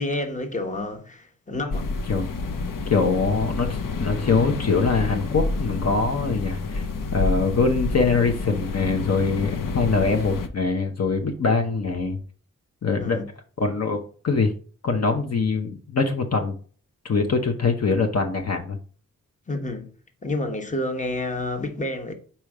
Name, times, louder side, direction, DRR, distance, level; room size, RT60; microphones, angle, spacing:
voice 1, 0.0-1.9 13.0-13.3 19.5-19.9 20.2-22.1, left 2 dB, 25° left, 1.1 m, -29 dB
sound 1, 1.7-10.5, left 3 dB, 85° left, 0.8 m, -28 dB
voice 2, 2.9-6.9 7.1-12.2 12.8-13.2 13.6-14.5 14.8-16.5 17.0-18.8, left 4 dB, 50° left, 0.9 m, -23 dB
5.1 x 4.4 x 4.8 m
wide cardioid pair, 105°, 32 cm